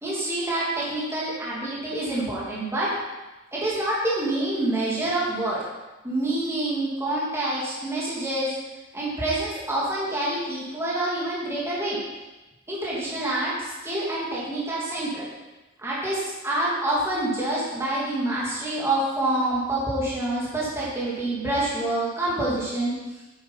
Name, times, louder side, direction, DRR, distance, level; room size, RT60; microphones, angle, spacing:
voice 1, 0.0-2.9 3.5-5.6 6.0-8.5 8.9-12.0 12.7-15.3 15.8-22.9, right 1 dB, 15° right, -7 dB, 2.7 m, -27 dB
9.0 x 8.5 x 5.7 m, 1.1 s
head